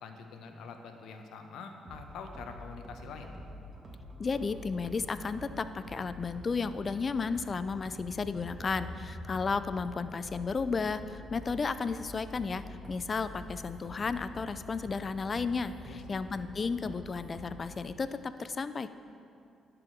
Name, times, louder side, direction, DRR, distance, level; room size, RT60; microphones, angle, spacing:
voice 1, 0.0-3.3 15.8-16.2, left 5 dB, 80° left, 5 dB, 0.9 m, -45 dB
sound 1, 1.8-17.8, equal, 25° right, 1.8 m, -47 dB
voice 2, 4.2-12.6 12.9-18.9, left 4 dB, 35° left, 13 dB, 0.4 m, -33 dB
11.0 x 4.9 x 6.2 m, 2.5 s
cardioid pair, 90°, 0 cm